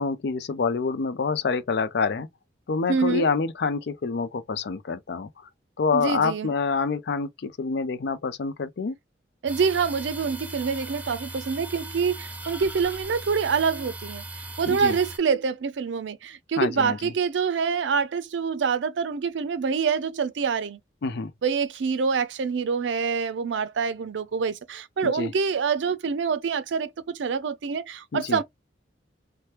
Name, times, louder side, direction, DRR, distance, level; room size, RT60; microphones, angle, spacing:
voice 1, 0.0-2.3 2.7-5.3 5.8-9.0 14.7-15.0 16.6-17.1 21.0-21.3 25.0-25.3 28.1-28.4, left 4 dB, 60° left, 0.4 m, -27 dB
voice 2, 2.9-3.3 5.9-6.5 9.4-14.2 14.6-20.8 21.4-28.4, right 5 dB, 75° right, 0.4 m, -26 dB
sound 1, 9.5-15.2, right 2 dB, 10° right, 0.4 m, -38 dB
2.9 x 2.1 x 3.2 m
head